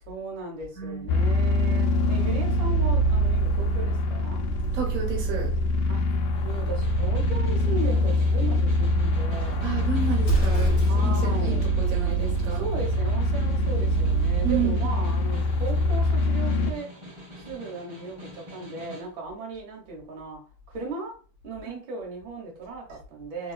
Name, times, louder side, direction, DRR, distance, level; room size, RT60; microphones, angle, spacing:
voice 1, 0.1-4.5 5.9-6.1 6.4-9.6 10.9-11.6 12.5-16.9 17.5-21.2 21.4-23.5, right 3 dB, 85° right, 1.8 m, -37 dB
voice 2, 0.7-1.1 4.7-5.5 9.6-12.6 14.4-14.9, right 6 dB, 50° right, 1.5 m, -31 dB
sound 1, 1.1-16.7, equal, 75° left, 1.3 m, -24 dB
Snare drum, 6.3-19.1, equal, 20° right, 0.9 m, -45 dB
Explosion, 10.2-11.3, right 4 dB, 50° left, 1.2 m, -27 dB
3.6 x 2.9 x 2.3 m
omnidirectional pair, 2.1 m